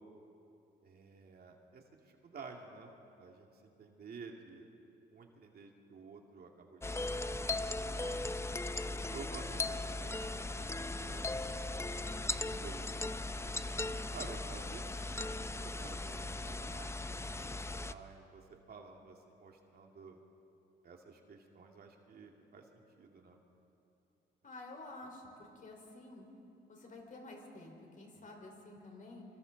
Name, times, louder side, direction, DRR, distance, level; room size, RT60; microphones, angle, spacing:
voice 1, 0.8-2.9 3.2-4.6 5.1-6.8 7.1-8.3 9.1-11.3 11.6-12.9 13.3-13.8 14.1-14.8 15.6-17.1 17.7-20.2 20.8-23.4 28.2-28.3, right 4 dB, 50° right, 1 dB, 2.5 m, -52 dB
sound 1, 6.8-17.9, left 2 dB, 15° left, 0.6 m, -38 dB
voice 2, 24.4-25.2 25.6-26.2 26.7-29.2, left 2 dB, 40° left, 1 dB, 4.8 m, -50 dB
25.5 x 25.5 x 4.1 m, 2.8 s
cardioid pair, 90°, 20 cm